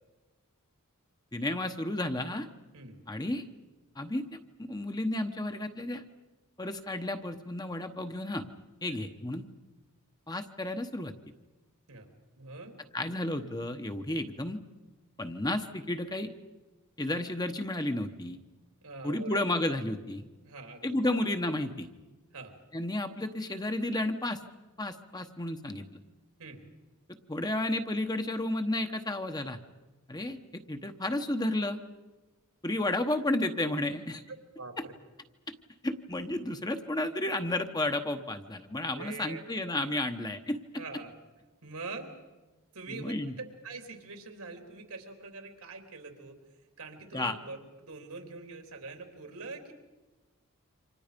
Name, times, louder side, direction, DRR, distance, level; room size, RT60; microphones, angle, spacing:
voice 1, 1.3-2.5 3.1-3.4 4.0-6.0 6.6-8.5 8.8-9.5 10.3-11.1 12.9-14.6 15.2-16.3 17.0-18.4 19.0-20.2 20.8-21.9 22.7-24.4 24.8-25.8 27.3-29.6 30.1-30.4 30.7-31.8 32.6-34.2 34.8-34.9 35.8-40.8 42.9-43.3 47.1-47.4, left 1 dB, 20° left, 7 dB, 1.0 m, -32 dB
voice 2, 12.4-12.8 18.8-19.4 20.4-21.0 22.3-22.5 26.4-26.6 34.6-34.9 39.0-39.4 40.8-41.1 41.6-42.1 42.7-46.4 46.8-49.7, right 3 dB, 80° right, 4 dB, 3.6 m, -44 dB
29.0 x 26.0 x 5.2 m, 1.2 s
head